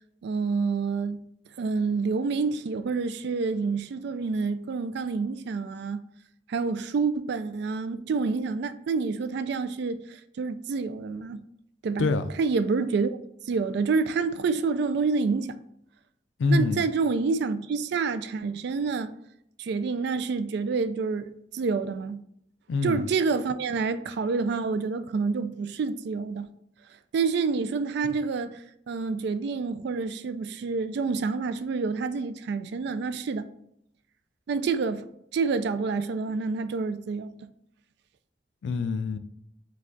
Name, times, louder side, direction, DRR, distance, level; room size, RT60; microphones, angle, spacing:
voice 1, 0.2-1.2 1.6-6.0 6.5-11.4 11.8-12.1 12.4-13.2 13.5-15.6 16.5-19.1 19.6-22.2 22.8-26.5 27.1-28.6 28.9-33.5 34.5-35.1 35.3-37.4, right 4 dB, 65° right, 0.3 m, -28 dB
voice 2, 16.4-16.8 22.7-23.0 38.6-39.2, left 3 dB, 80° left, 0.4 m, -25 dB
4.7 x 2.3 x 3.8 m
head